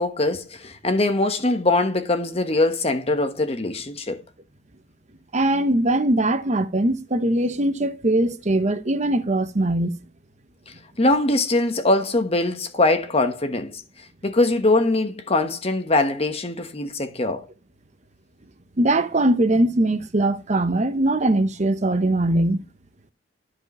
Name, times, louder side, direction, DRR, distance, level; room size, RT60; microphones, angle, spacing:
voice 1, 0.0-4.2 11.0-13.8 14.2-17.5, left 2 dB, 30° left, 1.2 m, -22 dB
voice 2, 5.3-10.0 18.8-22.6, right 1 dB, 35° right, 0.9 m, -21 dB
13.5 x 4.9 x 3.0 m
head